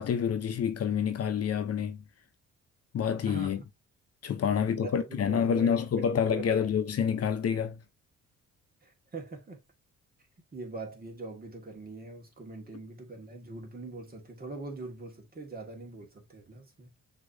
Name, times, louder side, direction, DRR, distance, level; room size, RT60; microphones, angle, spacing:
voice 1, 0.0-2.0 2.9-3.6 4.2-7.8, left 7 dB, 55° left, 0.9 m, -28 dB
voice 2, 4.5-5.8 6.3-6.6 8.8-9.6 10.5-16.9, right 3 dB, 30° right, 1.8 m, -42 dB
6.2 x 3.1 x 2.7 m
cardioid pair, 90°, 30 cm